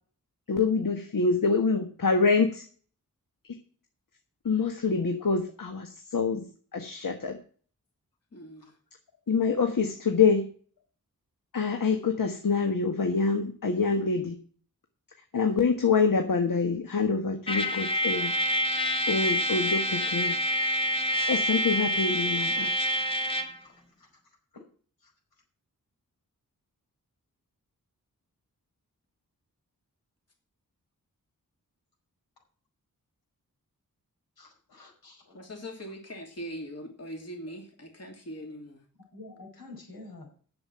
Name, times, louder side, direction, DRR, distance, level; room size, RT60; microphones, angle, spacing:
voice 1, 0.5-2.6 3.5-3.6 4.4-6.4 6.7-7.4 9.3-10.5 11.5-14.3 15.3-18.3 19.1-20.3 21.3-22.7, left 4 dB, 65° left, 5 dB, 1.5 m, -26 dB
voice 2, 8.3-8.7 9.6-9.9 35.3-38.8, equal, 45° left, 2 dB, 2.8 m, -41 dB
Trumpet, 17.5-23.6, equal, 15° left, 1.7 m, -27 dB
voice 3, 23.6-24.1 25.0-25.1 34.4-35.4 39.1-40.3, left 2 dB, 90° left, 0 dB, 5.3 m, -48 dB
7.9 x 7.3 x 8.6 m, 0.44 s
cardioid pair, 65°, 35 cm